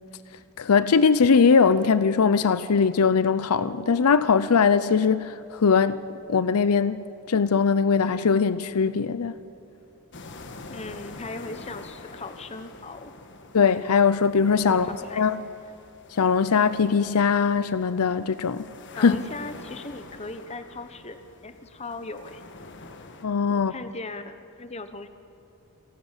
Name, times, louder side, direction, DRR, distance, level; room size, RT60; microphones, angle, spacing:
voice 1, 0.6-6.0 6.3-9.4 13.5-14.9 15.2-15.4 16.1-18.7 18.9-19.2 23.2-23.7, left 5 dB, 85° left, 0.6 m, -21 dB
sound 1, 10.1-23.3, left 3 dB, 55° left, 1.4 m, -45 dB
voice 2, 10.7-13.1 14.7-15.3 18.9-21.2 21.4-22.4 23.5-25.1, left 3 dB, 30° left, 1.0 m, -38 dB
28.5 x 12.5 x 7.4 m
head